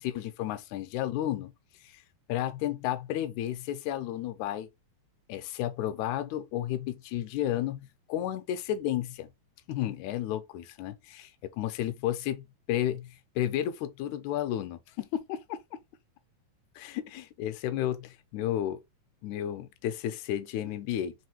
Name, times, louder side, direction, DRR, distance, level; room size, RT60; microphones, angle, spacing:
voice 1, 0.0-1.5 1.8-2.0 2.3-4.7 5.3-9.3 9.7-13.1 13.4-15.6 16.8-18.8 19.2-21.2, left 12 dB, 80° left, 1.8 m, -32 dB
4.9 x 3.2 x 2.9 m
omnidirectional pair, 3.9 m